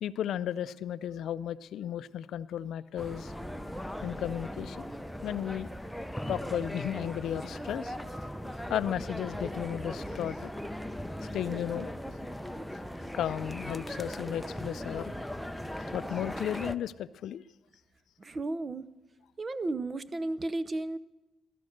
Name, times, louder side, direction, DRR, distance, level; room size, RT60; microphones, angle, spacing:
voice 1, 0.0-3.3 4.0-4.8 5.2-5.7 6.3-7.9 8.7-10.5 11.3-11.9 13.1-15.1 15.9-17.4, left 10 dB, 75° left, 16 dB, 0.4 m, -34 dB
sound 1, 3.0-16.8, equal, 5° left, 0.7 m, -38 dB
voice 2, 18.2-18.9 19.4-21.0, right 2 dB, 30° right, 16 dB, 0.7 m, -33 dB
16.5 x 12.5 x 6.5 m, 1.1 s
cardioid pair, 90°, 0 cm